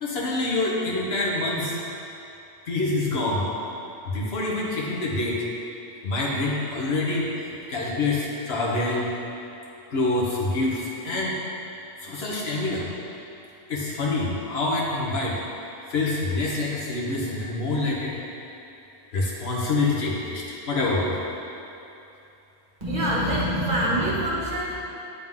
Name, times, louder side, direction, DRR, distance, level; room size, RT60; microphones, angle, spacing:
voice 1, 0.0-1.8 2.7-3.5 4.1-5.4 6.0-9.1 9.9-11.4 12.0-12.9 13.7-15.4 15.9-18.2 19.1-21.1, left 2 dB, 55° left, -4 dB, 1.3 m, -26 dB
voice 2, 22.8-24.8, right 1 dB, 35° right, -6 dB, 1.5 m, -25 dB
9.3 x 3.8 x 3.7 m, 2.9 s
omnidirectional pair, 1.3 m